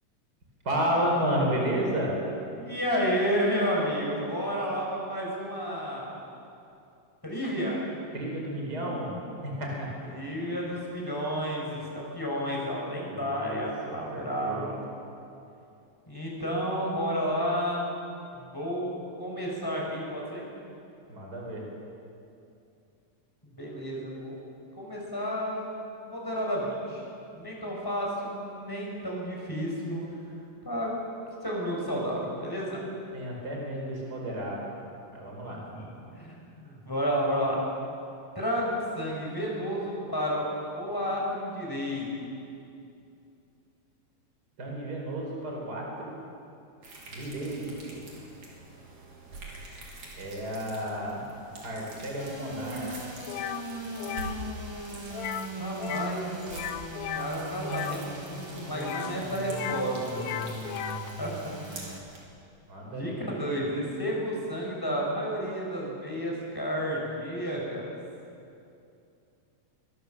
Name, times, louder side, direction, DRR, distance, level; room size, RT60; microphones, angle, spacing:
voice 1, 0.6-2.2 8.1-9.1 9.4-9.9 13.0-14.9 21.1-21.6 33.1-34.7 35.1-35.6 44.6-46.1 47.1-48.2 50.2-51.2 51.6-53.0 62.7-63.5, right 1 dB, 30° right, -1 dB, 5.1 m, -32 dB
voice 2, 2.6-6.2 7.2-7.8 10.1-14.8 16.1-17.9 18.3-20.4 23.4-24.4 24.8-25.7 26.1-27.0 27.3-30.2 30.6-30.9 31.4-32.8 35.4-36.4 36.6-37.7 38.3-40.5 40.7-42.3 55.6-56.3 57.1-60.7 61.2-61.3 61.7-62.0 62.9-67.9, equal, 5° left, -3 dB, 6.3 m, -31 dB
sound 1, 46.8-62.2, right 2 dB, 70° right, 5.2 m, -46 dB
sound 2, 52.2-62.0, right 1 dB, 15° right, 1.1 m, -39 dB
sound 3, 53.3-53.6 54.0-54.3 55.1-55.5 55.8-56.2 56.5-58.0 58.7-59.9 60.1-61.1, left 10 dB, 75° left, 2.2 m, -35 dB
24.5 x 21.0 x 7.5 m, 2.6 s
omnidirectional pair, 3.4 m